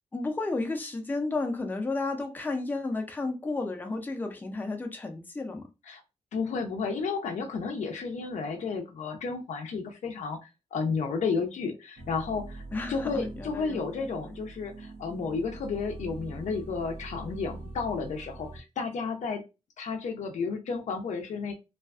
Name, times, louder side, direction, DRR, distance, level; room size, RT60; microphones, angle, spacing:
voice 1, 0.1-5.7 12.7-13.8, left 3 dB, 15° left, 0.5 m, -32 dB
voice 2, 6.3-12.6 12.9-19.4 19.8-21.5, left 4 dB, 70° left, 0.5 m, -32 dB
sound 1, 12.0-18.6, right 2 dB, 70° right, 0.7 m, -43 dB
2.4 x 2.2 x 2.4 m
wide cardioid pair, 100°, 13 cm